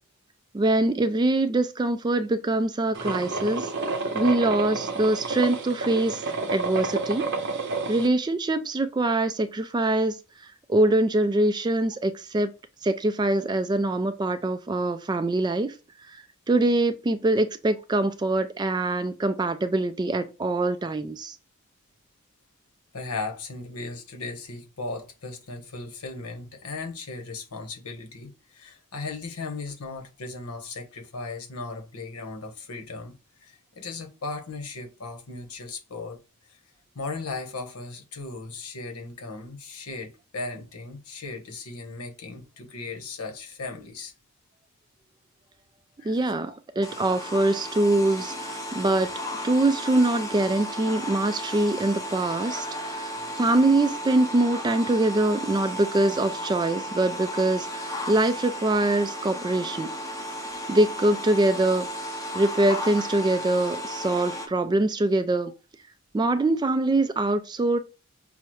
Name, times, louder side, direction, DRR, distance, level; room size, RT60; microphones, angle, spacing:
voice 1, 0.5-3.7 4.1-6.2 6.5-7.3 7.9-10.2 10.7-12.5 12.8-15.7 16.1-21.4 46.0-49.1 49.4-59.9 60.7-61.9 62.3-65.5 66.1-67.8, right 2 dB, 20° right, 0.3 m, -24 dB
sound 1, 2.9-8.1, right 3 dB, 55° right, 0.7 m, -30 dB
voice 2, 22.9-33.1 33.4-36.2 36.5-36.6 36.9-44.1 46.0-46.2 46.5-46.6, left 3 dB, 90° left, 1.0 m, -37 dB
sound 2, 46.8-64.5, equal, 15° left, 0.6 m, -34 dB
5.6 x 2.1 x 3.1 m
head